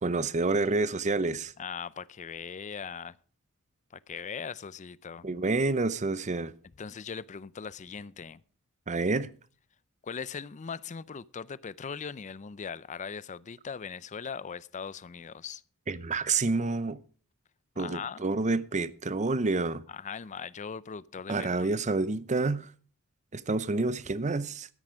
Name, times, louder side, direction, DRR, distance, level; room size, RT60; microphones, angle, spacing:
voice 1, 0.0-1.5 5.2-6.5 8.9-9.3 15.9-17.0 17.8-19.8 21.3-22.7 23.3-24.7, right 3 dB, 35° right, 0.7 m, -28 dB
voice 2, 1.6-3.2 4.1-5.3 6.8-8.4 10.0-15.6 17.8-18.2 19.9-21.7, left 6 dB, 35° left, 0.4 m, -39 dB
13.0 x 9.7 x 5.0 m
head